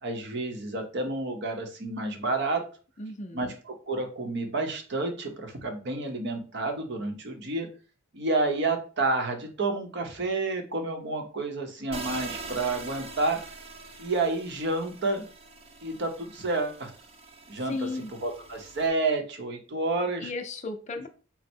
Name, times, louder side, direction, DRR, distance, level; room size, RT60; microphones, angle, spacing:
voice 1, 0.0-2.7 3.3-7.7 8.1-13.5 14.0-15.2 15.8-16.9 17.5-20.3, right 2 dB, 55° right, 4 dB, 0.8 m, -30 dB
voice 2, 3.0-3.5 17.7-18.1 20.2-21.1, left 3 dB, 35° left, 6 dB, 0.5 m, -35 dB
sound 1, 11.9-18.9, right 3 dB, 30° right, 0.5 m, -43 dB
4.2 x 2.0 x 4.3 m, 0.37 s
head